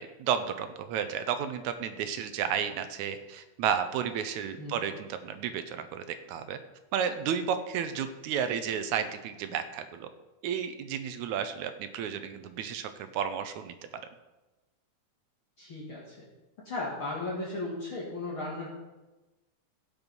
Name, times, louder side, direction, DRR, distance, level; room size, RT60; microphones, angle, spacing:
voice 1, 0.0-6.6 6.9-10.1 10.4-13.7, right 8 dB, 80° right, 10 dB, 1.9 m, -32 dB
voice 2, 15.6-16.2 16.7-18.7, left 2 dB, 45° left, -6 dB, 2.4 m, -36 dB
16.5 x 5.5 x 5.3 m, 1.1 s
omnidirectional pair, 3.7 m